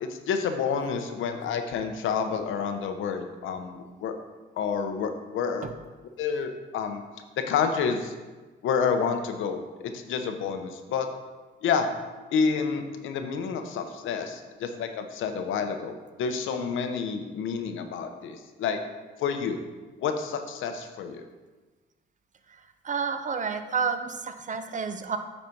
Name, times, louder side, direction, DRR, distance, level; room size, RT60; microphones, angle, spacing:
voice 1, 0.0-4.1 4.6-5.7 6.2-7.0 7.4-8.1 8.6-11.1 11.6-11.9 12.3-18.8 19.2-19.6 20.0-21.2, left 6 dB, 80° left, 7 dB, 0.8 m, -29 dB
voice 2, 22.8-25.2, right 5 dB, 40° right, 9 dB, 0.7 m, -30 dB
8.8 x 4.1 x 4.6 m, 1.3 s
cardioid pair, 90°, 20 cm